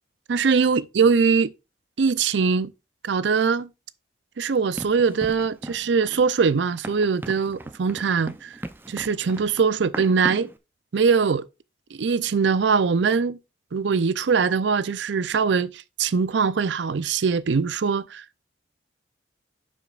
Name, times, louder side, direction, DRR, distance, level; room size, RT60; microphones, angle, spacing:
voice 1, 0.3-1.5 2.0-2.7 3.0-3.7 4.4-8.6 8.9-10.5 10.9-11.5 11.9-13.4 13.7-18.2, right 5 dB, 75° right, 0.5 m, -22 dB
Run, 4.8-10.6, right 1 dB, 10° right, 0.5 m, -38 dB
11.5 x 5.1 x 2.4 m
head